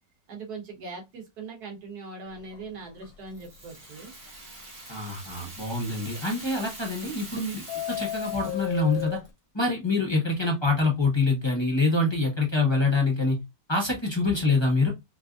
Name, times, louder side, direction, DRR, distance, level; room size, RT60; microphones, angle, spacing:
voice 1, 0.3-4.1, right 4 dB, 90° right, 1.8 m, -40 dB
Subway metro underground, 2.3-2.6 3.0-3.1 3.4-3.5 4.0-4.1 6.6-7.3 7.6-9.3, left 14 dB, 75° left, 1.1 m, -33 dB
Rattle (instrument), 3.3-9.3, right 2 dB, 45° right, 1.5 m, -44 dB
voice 2, 4.9-9.2 9.5-13.4 13.7-14.9, left 3 dB, 20° left, 1.0 m, -25 dB
4.1 x 2.6 x 2.4 m
omnidirectional pair, 1.6 m